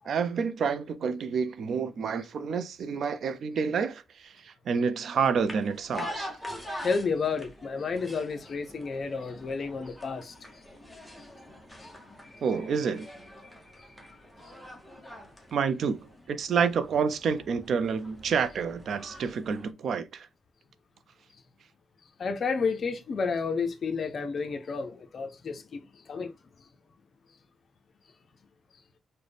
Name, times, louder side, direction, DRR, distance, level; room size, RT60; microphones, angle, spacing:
voice 1, 0.1-6.3 12.4-13.1 15.5-16.0 16.3-20.3, right 6 dB, 60° right, 0.4 m, -29 dB
sound 1, 5.1-19.7, left 1 dB, ahead, 0.8 m, -45 dB
voice 2, 6.8-10.3 11.8-11.9 22.2-26.3, left 5 dB, 45° left, 0.5 m, -31 dB
3.9 x 2.1 x 3.3 m
cardioid pair, 130°, 0 cm